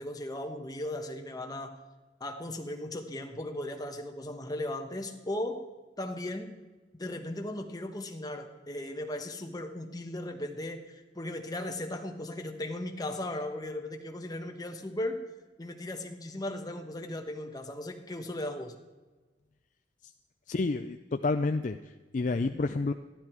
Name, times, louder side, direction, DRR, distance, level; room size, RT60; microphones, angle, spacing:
voice 1, 0.0-1.8 2.2-5.6 6.0-6.5 7.0-15.2 15.6-18.7, left 1 dB, 20° left, 4 dB, 1.2 m, -37 dB
voice 2, 20.5-21.8 22.1-22.9, left 3 dB, 45° left, 8 dB, 0.4 m, -29 dB
14.0 x 11.5 x 4.5 m, 1.2 s
head